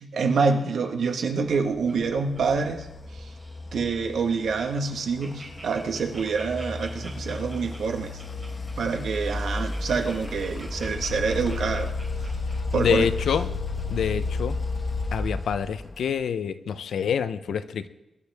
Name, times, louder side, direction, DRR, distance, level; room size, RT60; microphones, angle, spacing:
voice 1, 0.0-2.9 3.2-3.3 3.7-8.2 8.8-11.9 12.7-13.1, right 5 dB, 75° right, 4 dB, 1.5 m, -26 dB
Laughter, 1.5-3.0 3.3-3.7 4.1-4.2 4.5-4.6 4.9-13.3 13.8-13.9, right 1 dB, 15° right, 4.0 m, -46 dB
sound 1, 1.8-16.2, left 3 dB, 25° left, 1.1 m, -33 dB
voice 2, 12.7-13.5 13.9-14.6 15.1-17.9, left 7 dB, 90° left, 11 dB, 0.7 m, -26 dB
22.5 x 11.5 x 3.6 m, 0.95 s
wide cardioid pair, 150°, 0 cm